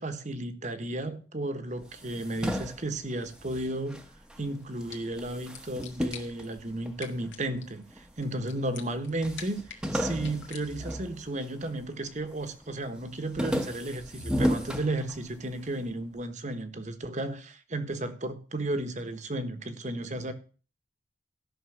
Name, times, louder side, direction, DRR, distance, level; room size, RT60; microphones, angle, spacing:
voice 1, 0.0-4.0 4.4-20.3, right 2 dB, 40° right, 1.3 m, -34 dB
sound 1, 1.8-4.5 4.8-7.3 7.9-8.6 8.9-9.0 9.2-11.8 12.2-12.6 13.0-15.6, equal, 5° right, 1.0 m, -34 dB
sound 2, 4.6-11.1, left 8 dB, 70° left, 2.0 m, -49 dB
13.0 x 6.1 x 7.3 m
head